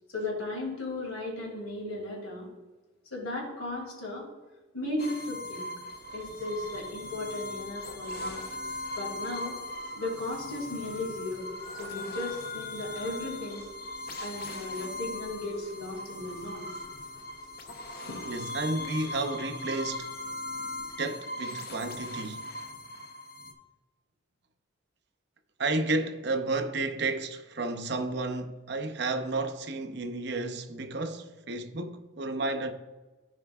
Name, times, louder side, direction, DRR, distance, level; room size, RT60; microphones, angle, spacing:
voice 1, 0.1-2.5 3.1-4.3 4.7-5.7 6.1-8.4 9.0-9.6 10.0-11.5 11.7-13.6 14.2-16.7 18.1-18.2, left 2 dB, 90° left, 2.5 m, -36 dB
sound 1, 5.0-23.5, left 1 dB, 45° left, 0.7 m, -39 dB
sound 2, 5.9-22.3, left 3 dB, 15° left, 2.1 m, -50 dB
voice 2, 18.2-20.2 21.0-22.4 25.6-32.7, right 2 dB, 55° right, 0.6 m, -32 dB
14.5 x 5.0 x 2.4 m
head